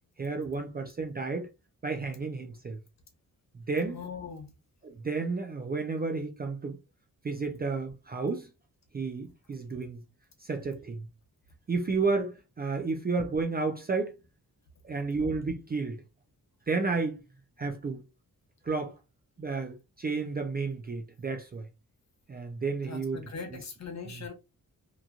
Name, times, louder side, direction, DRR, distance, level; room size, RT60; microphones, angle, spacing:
voice 1, 0.2-1.5 1.8-2.8 3.7-4.0 4.8-6.8 7.2-8.5 8.9-10.0 10.4-11.1 11.7-14.1 14.8-16.0 16.7-17.2 17.6-18.0 18.6-19.0 19.4-21.7 22.3-23.2 23.5-23.6 24.1-24.2, right 4 dB, 30° right, 0.4 m, -31 dB
voice 2, 3.9-4.5 22.8-24.3, left 5 dB, 50° left, 0.9 m, -40 dB
2.9 x 2.4 x 2.3 m
wide cardioid pair, 125°, 35 cm